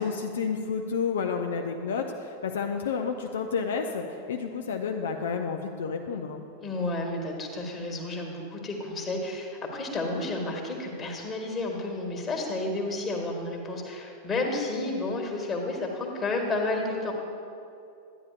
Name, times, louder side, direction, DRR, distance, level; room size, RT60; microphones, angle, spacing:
voice 1, 0.0-6.4, left 5 dB, 60° left, 4 dB, 0.4 m, -30 dB
voice 2, 6.6-17.1, left 2 dB, 20° left, 1 dB, 1.4 m, -31 dB
12.0 x 9.5 x 2.4 m, 2.6 s
figure-of-eight pair, 90°, 0 cm